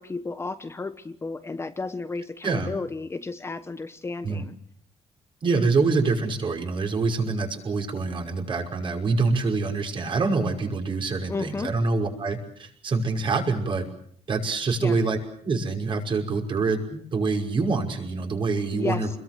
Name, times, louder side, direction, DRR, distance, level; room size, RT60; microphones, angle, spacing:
voice 1, 0.0-4.5 11.3-11.7 14.8-15.0 18.7-19.1, left 3 dB, 20° left, 10 dB, 1.1 m, -33 dB
voice 2, 5.4-13.8 14.3-19.1, right 3 dB, 45° right, 3 dB, 5.7 m, -25 dB
28.0 x 22.0 x 7.7 m, 0.63 s
cardioid pair, 140°, 12 cm